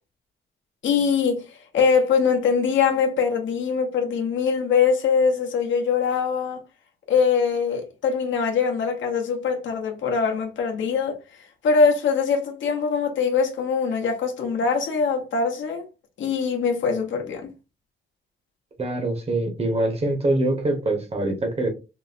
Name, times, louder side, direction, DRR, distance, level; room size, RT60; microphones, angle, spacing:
voice 1, 0.8-6.6 7.1-11.2 11.6-15.9 16.2-17.5, left 5 dB, 70° left, 0.8 m, -22 dB
voice 2, 18.8-21.7, right 2 dB, 30° right, 0.9 m, -24 dB
3.9 x 2.1 x 2.4 m
cardioid pair, 130°, 20 cm